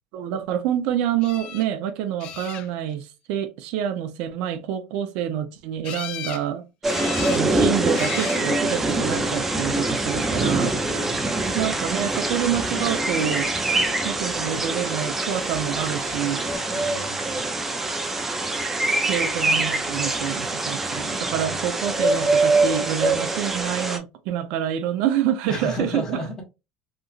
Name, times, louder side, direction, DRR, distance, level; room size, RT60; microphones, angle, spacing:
voice 1, 0.1-6.6 7.3-10.8 11.5-13.5 14.0-16.5 19.1-26.2, right 10 dB, 75° right, 0.5 m, -27 dB
sound 1, 1.2-1.7 2.2-2.9 5.8-6.4 6.8-7.5 7.9-8.4 9.4-9.8 16.1-16.2 16.5-16.6, left 11 dB, 60° left, 0.3 m, -36 dB
sound 2, 6.8-24.0, right 2 dB, 15° right, 0.5 m, -24 dB
voice 2, 16.7-17.4 21.3-21.7 25.5-26.4, left 1 dB, 30° left, 1.1 m, -35 dB
2.9 x 2.4 x 2.4 m
supercardioid pair, 120°, 2 cm